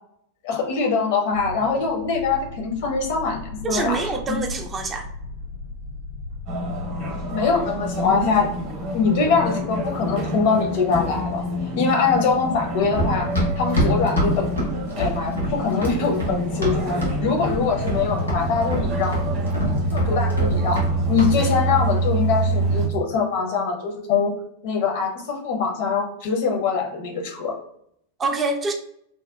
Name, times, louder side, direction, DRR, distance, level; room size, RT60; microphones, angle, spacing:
voice 1, 0.4-3.4 3.7-4.4 7.3-8.5 8.9-11.4 11.8-13.3 13.6-14.5 14.9-19.2 19.9-20.8 21.1-24.3 24.6-27.5, left 5 dB, 50° left, 2 dB, 0.6 m, -23 dB
sound 1, 1.3-9.5, left 2 dB, 90° right, 0.5 m, -37 dB
voice 2, 3.6-5.1 28.2-28.7, right 3 dB, 20° right, 4 dB, 0.3 m, -25 dB
sound 2, 6.5-22.9, right 1 dB, 45° right, 0.7 m, -26 dB
Run, 13.0-17.2 17.4-18.0 18.3-20.9 21.2-21.4, equal, 85° left, 0.9 m, -24 dB
2.7 x 2.1 x 2.3 m, 0.71 s
figure-of-eight pair, 90°, 0 cm